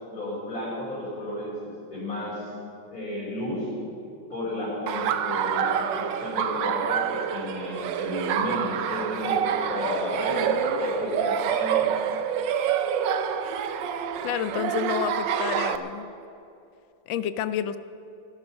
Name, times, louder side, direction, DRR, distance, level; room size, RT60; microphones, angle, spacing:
voice 1, 0.1-2.5 2.9-3.7 4.3-10.4 10.8-11.9, left 1 dB, 45° left, -8 dB, 5.1 m, -32 dB
Laughter, 4.9-15.8, right 8 dB, 75° right, 1.4 m, -27 dB
voice 2, 10.3-10.8 11.1-11.5 14.2-16.1 17.1-17.8, left 9 dB, 90° left, 13 dB, 1.4 m, -30 dB
16.5 x 12.5 x 5.6 m, 2.7 s
omnidirectional pair, 2.1 m